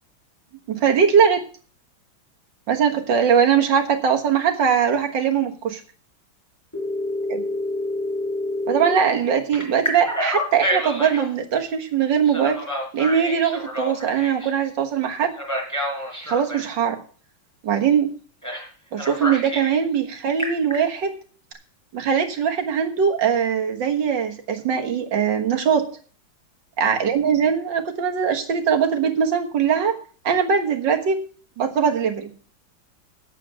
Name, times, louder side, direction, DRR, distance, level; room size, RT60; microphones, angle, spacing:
voice 1, 0.7-1.4 2.7-5.8 7.3-7.4 8.7-12.6 12.9-15.4 16.2-17.0 17.6-18.1 18.9-21.2 21.9-25.9 26.8-30.0 30.2-31.2 31.6-32.3, right 7 dB, 65° right, 3 dB, 2.1 m, -21 dB
Telephone, 6.7-9.0 9.5-11.3 12.3-14.5 15.3-16.7 18.4-18.7 19.0-19.8 20.2-20.8, left 1 dB, 10° left, 4.1 m, -28 dB
9.2 x 8.5 x 6.2 m, 0.42 s
omnidirectional pair, 2.2 m